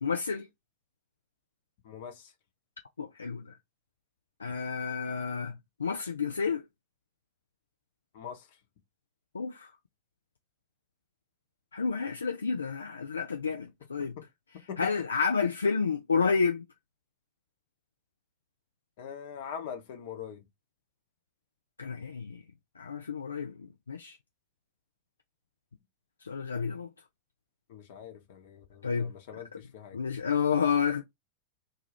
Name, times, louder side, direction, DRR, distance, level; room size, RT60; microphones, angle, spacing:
voice 1, 0.0-0.5 3.0-3.5 4.4-5.5 5.8-6.6 9.3-9.7 11.7-14.2 14.8-16.6 21.8-22.4 22.8-23.5 23.9-24.2 26.2-26.9 28.8-29.1 29.9-31.0, left 5 dB, 75° left, 0.3 m, -30 dB
voice 2, 1.8-2.3 8.1-8.5 14.0-14.2 14.7-14.9 19.0-20.4 27.7-30.0, left 7 dB, 50° left, 0.9 m, -43 dB
2.6 x 2.3 x 3.3 m
figure-of-eight pair, 90°, 0 cm